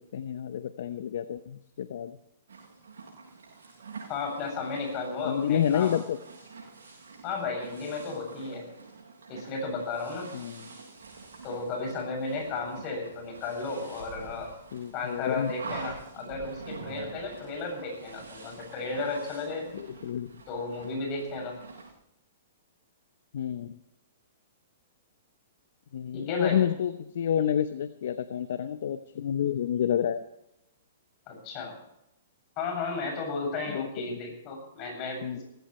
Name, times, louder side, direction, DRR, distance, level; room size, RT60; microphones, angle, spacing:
voice 1, 0.0-2.2 5.2-6.2 10.3-10.7 14.7-15.5 19.7-20.3 23.3-23.8 25.9-30.2 33.7-34.2 35.2-35.4, left 9 dB, 70° left, 11 dB, 0.9 m, -29 dB
sound 1, 2.5-21.9, right 4 dB, 80° right, 6.6 m, -46 dB
voice 2, 4.1-6.0 7.2-8.6 9.3-10.4 11.4-14.5 14.9-19.7 20.5-21.6 26.1-26.6 31.3-31.7 32.6-35.4, left 3 dB, 35° left, 3 dB, 7.8 m, -34 dB
19.0 x 16.0 x 3.3 m, 0.83 s
hypercardioid pair, 135°, 0 cm